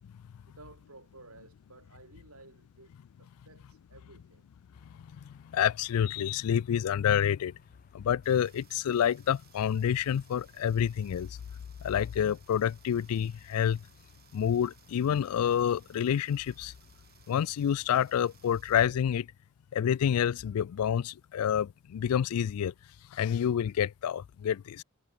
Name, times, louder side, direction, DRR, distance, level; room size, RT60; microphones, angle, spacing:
voice 1, 0.4-2.9 3.2-4.5, right 2 dB, 80° right, 6.7 m, -55 dB
sound 1, 4.7-18.6, left 2 dB, 40° left, 1.5 m, -63 dB
voice 2, 5.4-7.5 7.9-11.4 11.8-13.8 14.3-16.7 17.3-19.3 19.7-22.7 23.1-24.8, left 9 dB, 85° left, 0.3 m, -28 dB
sound 2, 8.2-18.9, right 12 dB, 45° right, 6.3 m, -63 dB
head